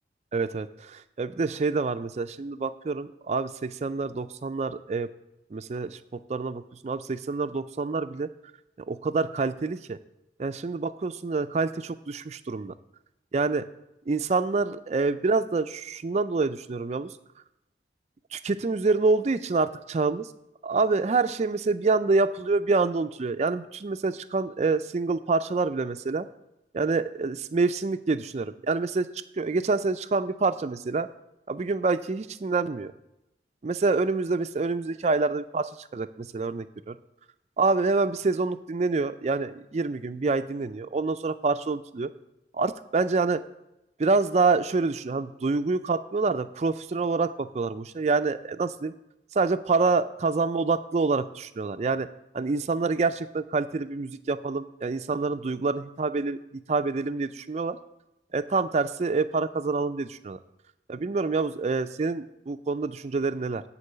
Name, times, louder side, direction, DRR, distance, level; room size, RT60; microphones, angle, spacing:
voice 1, 0.3-5.1 5.5-6.0 6.3-8.3 8.9-10.0 10.4-12.7 13.3-13.7 14.1-17.1 18.3-20.3 20.6-26.3 26.7-29.1 29.4-31.1 31.5-32.9 33.6-36.9 37.6-42.1 42.5-43.4 44.0-48.9 49.3-52.1 52.3-56.4 56.7-57.8 58.3-60.4 60.9-63.6, right 3 dB, 40° right, 11 dB, 0.4 m, -27 dB
9.9 x 4.6 x 6.6 m, 0.89 s
head